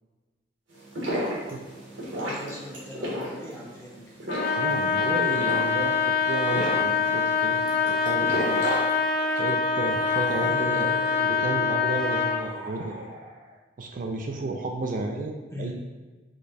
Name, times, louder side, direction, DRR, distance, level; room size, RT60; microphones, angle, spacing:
sound 1, 0.7-9.5, equal, 80° right, 1.5 m, -33 dB
voice 1, 2.1-4.0 10.4-10.9 15.5-15.7, left 1 dB, 15° left, -4 dB, 0.8 m, -40 dB
Trumpet, 4.3-12.5, left 5 dB, 55° left, 0.5 m, -25 dB
voice 2, 4.5-7.6 8.0-8.6 9.4-10.9 11.2-13.1 13.8-15.7, right 2 dB, 45° right, 3 dB, 0.4 m, -32 dB
sound 2, 7.8-13.6, right 1 dB, 25° right, 0.9 m, -42 dB
5.0 x 2.3 x 4.1 m, 1.3 s
head